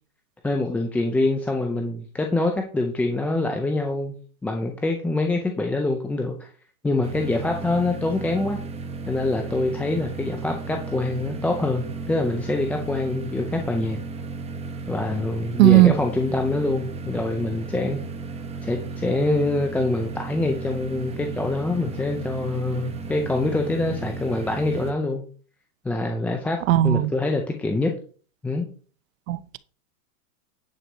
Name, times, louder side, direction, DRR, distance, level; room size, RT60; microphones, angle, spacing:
voice 1, 0.4-4.1 4.4-6.5 6.8-8.6 9.1-14.0 14.9-18.0 18.6-25.2 25.8-26.6 26.8-27.9 28.4-28.7, left 2 dB, 5° left, 0.4 m, -25 dB
sound 1, 7.0-24.9, right 4 dB, 15° right, 1.0 m, -34 dB
voice 2, 15.6-15.9 26.7-27.1 29.3-29.6, right 16 dB, 65° right, 0.8 m, -16 dB
10.0 x 4.6 x 5.2 m
supercardioid pair, 145°, 44 cm